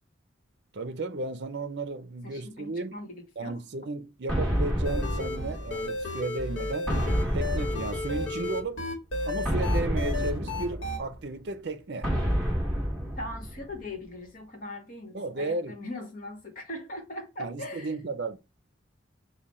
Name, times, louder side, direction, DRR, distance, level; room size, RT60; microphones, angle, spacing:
voice 1, 0.7-3.0 3.4-6.9 7.3-8.8 9.2-12.1 15.1-15.8 17.4-18.4, right 2 dB, 60° right, 0.6 m, -34 dB
voice 2, 2.2-3.6 13.2-17.9, left 1 dB, 45° left, 1.1 m, -40 dB
sound 1, 4.3-6.1 6.9-8.6 9.4-11.2 12.0-13.8, equal, ahead, 1.8 m, -29 dB
sound 2, 4.8-11.0, left 2 dB, 80° left, 1.1 m, -33 dB
4.9 x 2.2 x 4.1 m
head